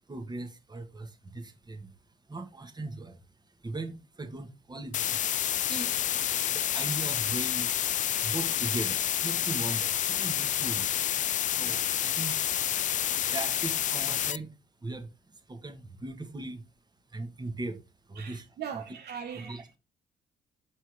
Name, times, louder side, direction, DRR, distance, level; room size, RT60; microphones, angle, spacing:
voice 1, 0.1-1.9 2.3-3.2 3.6-5.2 5.5-6.0 6.5-7.7 8.2-12.5 13.2-14.5 14.8-16.6 17.1-17.8 18.1-18.4 18.7-18.8 19.3-19.8, right 2 dB, 20° right, 1.5 m, -39 dB
sound 1, 4.9-14.4, left 11 dB, 45° left, 0.4 m, -29 dB
voice 2, 18.2-19.8, right 8 dB, 60° right, 0.8 m, -40 dB
6.4 x 4.6 x 4.7 m
hypercardioid pair, 50°, 19 cm